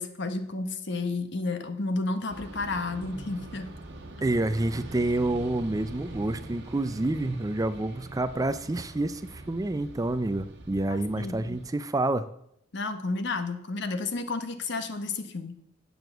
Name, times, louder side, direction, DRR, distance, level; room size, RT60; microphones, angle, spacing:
voice 1, 0.0-3.7 10.9-11.6 12.7-15.6, left 3 dB, 60° left, 9 dB, 1.1 m, -32 dB
sound 1, 2.3-11.7, right 2 dB, 60° right, 1.8 m, -43 dB
voice 2, 4.2-12.3, right 2 dB, 20° right, 12 dB, 0.4 m, -28 dB
7.8 x 7.0 x 7.8 m, 0.74 s
head